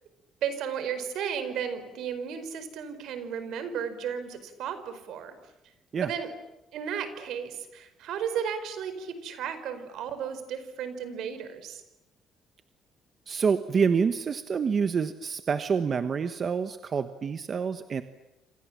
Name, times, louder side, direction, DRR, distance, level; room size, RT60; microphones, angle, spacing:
voice 1, 0.4-5.4 6.0-6.3 6.7-11.8, right 8 dB, 70° right, 11 dB, 4.8 m, -34 dB
voice 2, 13.3-18.0, right 6 dB, 35° right, 9 dB, 1.2 m, -27 dB
29.0 x 26.0 x 7.5 m, 0.93 s
cardioid pair, 145°, 0 cm